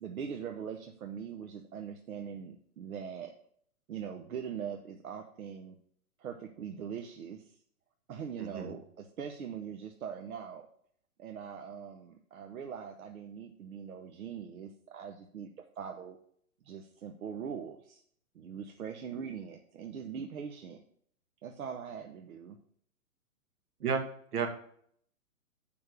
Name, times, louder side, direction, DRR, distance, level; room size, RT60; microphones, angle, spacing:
voice 1, 0.0-3.3 3.9-5.8 6.2-7.6 8.1-10.7 11.2-16.2 16.6-18.0 18.3-20.8 21.4-22.6, right 7 dB, 70° right, 4 dB, 1.0 m, -42 dB
voice 2, 8.4-8.7 23.8-24.0 24.3-24.5, right 6 dB, 85° right, 4 dB, 2.2 m, -31 dB
7.1 x 5.3 x 6.6 m, 0.63 s
hypercardioid pair, 170°, 44 cm